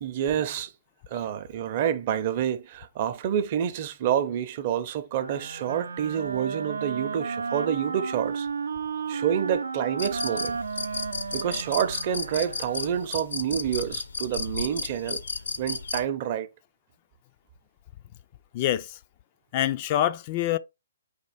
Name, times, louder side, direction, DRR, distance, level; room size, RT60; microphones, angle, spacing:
voice 1, 0.0-0.7 1.1-8.5 9.1-10.6 11.3-15.2 15.6-16.5, right 9 dB, 40° right, 0.6 m, -28 dB
Wind instrument woodwind instrument, 5.1-13.2, right 5 dB, 80° right, 0.6 m, -33 dB
sound 1, 10.0-16.0, left 4 dB, 75° left, 0.8 m, -34 dB
voice 2, 18.5-18.9 19.5-20.6, left 12 dB, 35° left, 0.3 m, -25 dB
4.3 x 2.5 x 4.8 m
hypercardioid pair, 140°, 0 cm